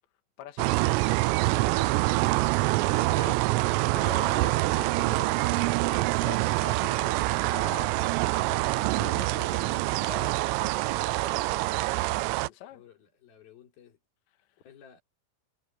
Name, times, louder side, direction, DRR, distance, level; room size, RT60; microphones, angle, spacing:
voice 1, 0.4-0.9 2.9-3.5 3.9-11.8 12.4-12.8, left 11 dB, 65° left, 4.0 m, -45 dB
sound 1, 0.6-12.5, right 20 dB, 85° right, 3.2 m, -26 dB
voice 2, 3.0-3.6 12.7-14.0 14.6-15.0, left 8 dB, 50° left, 5.6 m, -55 dB
omnidirectional pair, 6.0 m